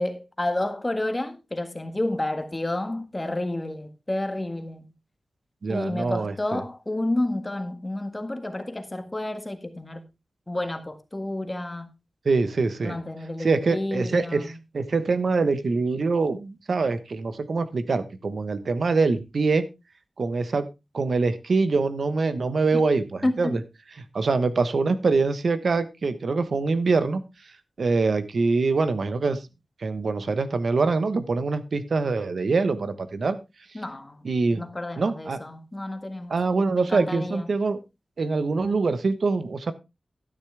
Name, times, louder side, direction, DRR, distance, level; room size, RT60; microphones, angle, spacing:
voice 1, 0.0-4.9 5.7-10.0 10.5-11.9 12.8-14.6 22.7-22.8 23.2-23.6 33.7-34.3 34.5-36.4 36.7-37.5, left 1 dB, 20° left, 1.7 m, -30 dB
voice 2, 5.6-6.6 12.2-13.0 13.4-14.5 14.7-19.7 20.2-20.7 20.9-23.6 24.1-27.2 27.8-29.4 29.8-33.4 34.2-34.6 35.0-35.4 36.3-37.8 38.2-39.7, right 4 dB, 70° right, 1.1 m, -24 dB
12.5 x 10.0 x 3.4 m
wide cardioid pair, 115°, 0 cm